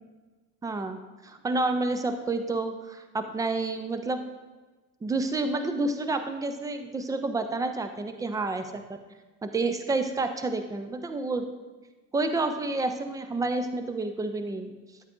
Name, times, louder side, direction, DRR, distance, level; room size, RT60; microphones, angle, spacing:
voice 1, 0.6-4.2 5.0-8.8 9.4-11.5 12.1-14.7, right 3 dB, 10° right, 8 dB, 0.4 m, -29 dB
13.0 x 7.9 x 2.4 m, 1.3 s
figure-of-eight pair, 70°, 48 cm